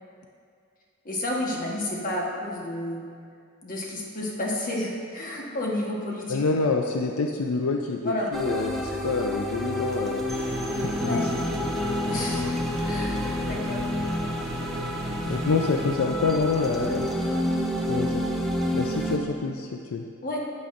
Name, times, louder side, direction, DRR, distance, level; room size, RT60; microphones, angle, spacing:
voice 1, 1.0-3.0 3.6-6.4 8.0-8.3 11.0-11.3 12.0-12.5 12.8-13.8 20.2-20.4, left 1 dB, 40° left, -2 dB, 1.3 m, -30 dB
voice 2, 6.3-10.3 10.7-11.2 15.3-17.1 17.9-18.2 18.7-20.0, left 4 dB, 80° left, 3 dB, 0.5 m, -27 dB
sound 1, 8.3-19.2, left 1 dB, ahead, 0.6 m, -29 dB
sound 2, 10.3-16.0, right 2 dB, 50° right, 0.6 m, -37 dB
11.0 x 8.6 x 2.6 m, 2.3 s
head